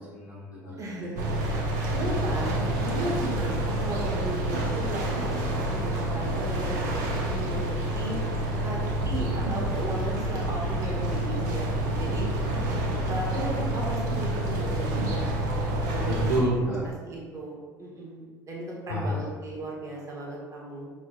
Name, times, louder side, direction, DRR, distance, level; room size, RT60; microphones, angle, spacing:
voice 1, 0.1-1.0 16.1-16.8 18.9-19.2, right 1 dB, 85° left, -9 dB, 1.8 m, -29 dB
voice 2, 0.8-1.7 1.9-8.2 8.6-8.8 9.0-12.3 13.1-15.2 15.5-16.4 16.8-20.9, right 1 dB, 30° right, -3 dB, 1.7 m, -35 dB
sound 1, 1.2-16.4, right 1 dB, 65° right, 1.0 m, -28 dB
6.1 x 6.1 x 2.6 m, 1.4 s
figure-of-eight pair, 60°, 10 cm